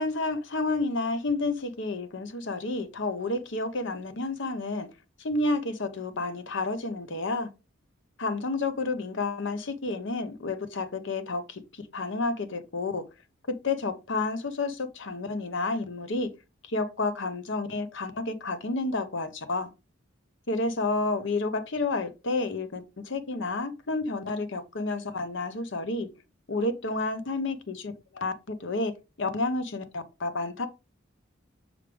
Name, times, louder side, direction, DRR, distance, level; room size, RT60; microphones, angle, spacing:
voice 1, 0.0-4.9 5.2-7.5 8.2-13.1 13.5-16.3 16.7-19.7 20.5-26.1 26.5-30.7, left 3 dB, 65° left, 0.9 m, -30 dB
6.5 x 5.0 x 3.4 m
head